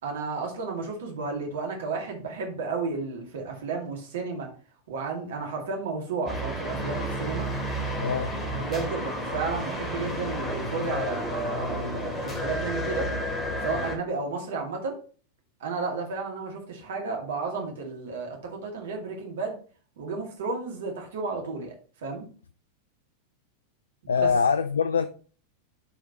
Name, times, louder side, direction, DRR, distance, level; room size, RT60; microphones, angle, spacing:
voice 1, 0.0-4.5 4.9-7.5 8.5-13.1 13.6-15.0 15.6-19.6 20.0-21.7 22.0-22.3 24.0-24.3, right 4 dB, 60° right, 2.2 m, -32 dB
sound 1, 6.3-14.0, equal, 20° left, 2.6 m, -31 dB
voice 2, 8.0-8.3 24.1-25.1, left 6 dB, 70° left, 0.4 m, -23 dB
11.0 x 5.1 x 3.0 m
figure-of-eight pair, 90°, 0 cm